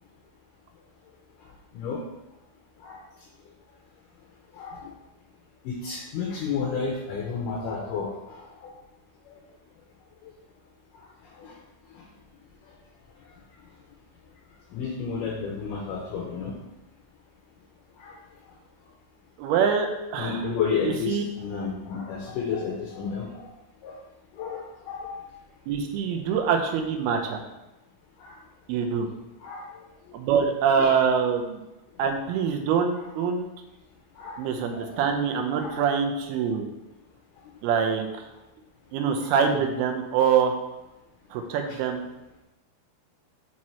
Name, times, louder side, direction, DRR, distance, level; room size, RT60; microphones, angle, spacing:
voice 1, 4.5-4.9 5.6-8.7 9.3-9.4 10.2-10.3 11.0-11.1 11.4-11.5 11.9-12.0 13.3-13.4 14.7-16.5 18.0-18.2 20.2-23.5 23.8-24.0 24.3-25.2 28.2-28.4 29.4-29.7 30.8-31.0 34.2-34.4 34.7-35.0 35.5-35.8 39.2-39.4 41.5-41.8, left 5 dB, 75° left, -1 dB, 2.0 m, -32 dB
voice 2, 19.4-20.4 20.8-21.2 25.7-27.4 28.7-29.1 30.1-31.6 32.0-33.5 34.4-36.7 37.6-38.1 38.9-40.6 41.3-42.0, right 6 dB, 80° right, 4 dB, 2.6 m, -24 dB
6.1 x 4.6 x 4.3 m, 0.96 s
omnidirectional pair, 4.6 m